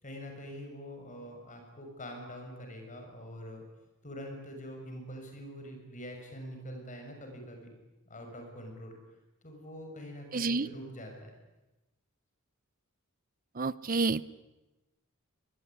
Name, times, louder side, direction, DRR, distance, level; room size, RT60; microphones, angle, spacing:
voice 1, 0.0-3.6 4.0-7.7 8.1-8.9 9.4-11.3, equal, 35° left, 3 dB, 6.8 m, -44 dB
voice 2, 10.3-10.7 13.6-14.2, right 3 dB, 40° right, 18 dB, 0.8 m, -29 dB
25.0 x 21.0 x 9.9 m, 1.0 s
head